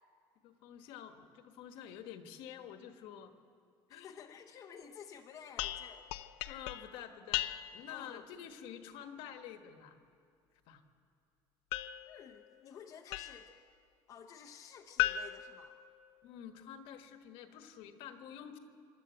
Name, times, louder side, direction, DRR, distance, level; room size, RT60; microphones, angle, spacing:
voice 1, 0.4-3.3 3.9-4.4 6.5-7.4 7.7-10.0 10.7-10.8 16.2-18.6, left 9 dB, 60° left, 7 dB, 1.4 m, -49 dB
voice 2, 3.9-6.1 7.9-8.4 12.1-13.5 14.1-15.8, left 7 dB, 30° left, 2 dB, 0.8 m, -52 dB
sound 1, 5.6-8.0 11.7-13.6 15.0-16.4, left 14 dB, 80° left, 0.6 m, -38 dB
26.0 x 12.5 x 8.1 m, 2.4 s
cardioid pair, 175°, 10 cm